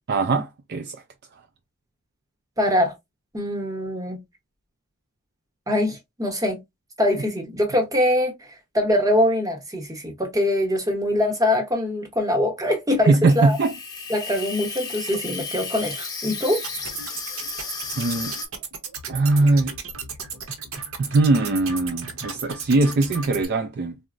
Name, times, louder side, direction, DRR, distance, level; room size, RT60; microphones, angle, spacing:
voice 1, 0.1-1.0 13.1-13.8 18.0-18.3 19.1-19.8 21.0-24.0, right 3 dB, 50° right, 0.3 m, -21 dB
voice 2, 2.6-2.9 3.3-4.2 5.7-6.6 7.0-8.3 8.7-13.6 14.1-16.6, left 1 dB, 15° right, 0.8 m, -23 dB
Water tap faucet / Sink (filling or washing), 13.3-18.5, left 4 dB, 15° left, 0.6 m, -34 dB
sound 1, 16.5-23.5, right 5 dB, 70° right, 0.8 m, -35 dB
4.0 x 2.1 x 2.4 m
head